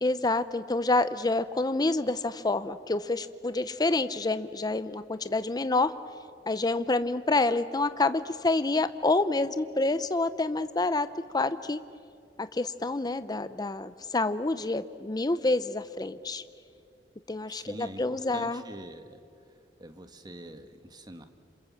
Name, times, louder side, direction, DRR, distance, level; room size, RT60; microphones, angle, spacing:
voice 1, 0.0-5.9 6.5-11.1 11.3-11.8 12.4-16.4 17.3-18.6, left 2 dB, 25° left, 12 dB, 0.7 m, -28 dB
voice 2, 17.5-19.2 19.8-21.3, right 1 dB, 25° right, 7 dB, 1.5 m, -44 dB
27.5 x 27.0 x 7.4 m, 2.4 s
head